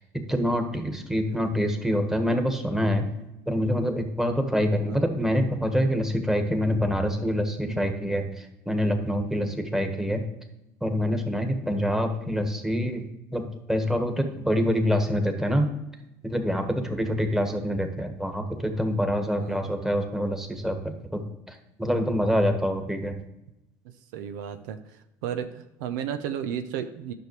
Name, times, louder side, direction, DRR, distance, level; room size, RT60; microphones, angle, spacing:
voice 1, 0.0-3.1 3.5-10.3 10.8-13.1 13.3-15.7 16.2-23.2, equal, 5° right, 5 dB, 1.5 m, -26 dB
voice 2, 4.6-5.0 7.6-7.9 9.4-9.6 16.9-17.2 19.4-19.8 21.8-22.2 24.1-24.8 25.2-27.1, right 9 dB, 80° right, 8 dB, 0.6 m, -34 dB
10.5 x 6.2 x 3.2 m, 0.89 s
hypercardioid pair, 80°, 10 cm